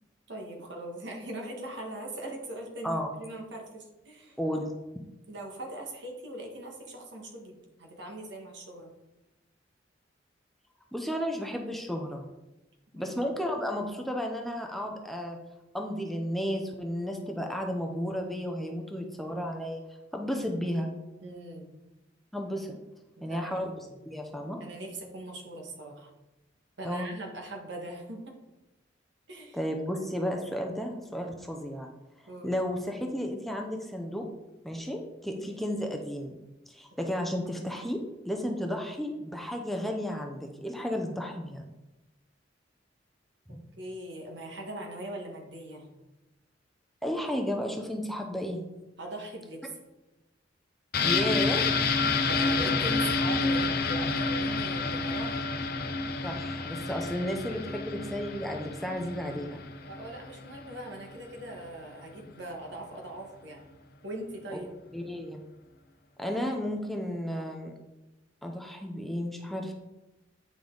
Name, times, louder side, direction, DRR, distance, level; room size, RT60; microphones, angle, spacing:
voice 1, 0.3-4.4 5.3-8.9 12.9-13.2 21.2-21.7 23.2-23.8 24.6-26.1 26.8-28.4 29.3-29.6 32.3-32.5 35.3-35.5 43.5-45.9 49.0-49.7 52.2-55.4 59.9-63.6 64.0-64.7, right 1 dB, 70° right, 1 dB, 1.6 m, -41 dB
voice 2, 4.4-4.7 10.9-12.2 12.9-15.4 15.7-19.8 20.1-20.9 22.3-22.8 23.2-23.7 24.1-24.6 26.8-27.1 29.5-31.9 32.4-34.3 34.6-36.4 36.7-38.0 38.2-41.7 43.5-43.6 47.0-48.6 51.0-51.7 56.2-59.6 64.5-64.6 64.9-65.4 66.2-67.7 68.4-69.7, equal, ahead, 2 dB, 0.6 m, -33 dB
sound 1, 50.9-60.6 60.9-61.0, left 4 dB, 55° left, 0.8 m, -29 dB
8.6 x 5.2 x 3.9 m, 1.0 s
head